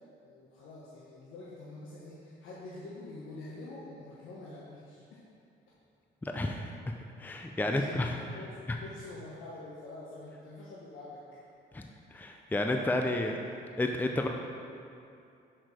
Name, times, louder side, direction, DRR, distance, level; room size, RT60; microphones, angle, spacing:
voice 1, 0.2-5.2 7.4-7.5 7.7-11.4, left 2 dB, 85° left, -6 dB, 1.2 m, -46 dB
voice 2, 6.2-6.7 7.2-8.1 11.7-13.4 13.8-14.3, left 1 dB, 10° left, 3 dB, 0.5 m, -31 dB
6.3 x 6.2 x 4.8 m, 2.6 s
cardioid pair, 90°, 20 cm